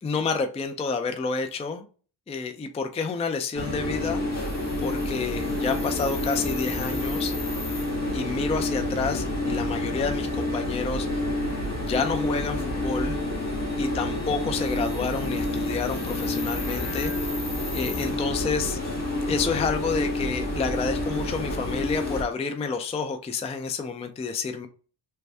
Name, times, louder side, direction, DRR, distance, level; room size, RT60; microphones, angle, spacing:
voice 1, 0.0-1.8 2.3-4.5 4.8-7.3 8.1-11.1 11.8-13.2 13.8-17.4 17.7-18.8 19.3-24.7, left 5 dB, 15° left, 0.3 m, -29 dB
sound 1, 3.5-22.2, left 1 dB, 30° left, 1.5 m, -28 dB
3.4 x 2.5 x 3.3 m
cardioid pair, 125°, 49 cm